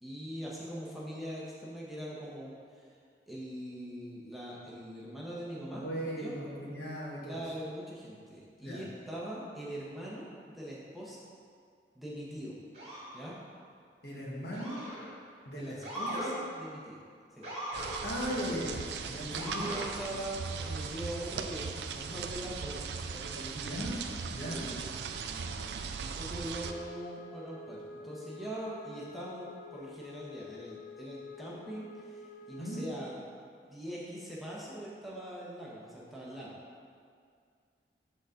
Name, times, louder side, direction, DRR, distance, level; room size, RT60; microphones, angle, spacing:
voice 1, 0.0-3.0 3.3-5.8 6.2-6.3 7.2-11.2 11.9-12.5 13.1-13.4 15.5-15.8 16.1-17.0 17.3-17.5 19.1-23.5 24.4-25.6 26.0-33.2 33.5-36.5, right 1 dB, ahead, -7 dB, 1.0 m, -42 dB
voice 2, 5.7-7.4 8.6-8.8 14.0-14.8 15.4-16.4 18.0-19.7 23.5-24.0 24.3-24.7 32.6-32.8, equal, 70° left, -5 dB, 1.5 m, -38 dB
Motor vehicle (road) / Siren, 12.7-13.1 14.5-15.1 15.8-16.3 17.4-18.0 19.3-19.9, right 1 dB, 35° right, 1.7 m, -38 dB
sound 1, 17.7-26.7, right 5 dB, 75° right, 0.4 m, -39 dB
Wind instrument woodwind instrument, 26.6-33.1, left 2 dB, 50° left, 0.4 m, -49 dB
6.2 x 3.8 x 5.7 m, 2.2 s
head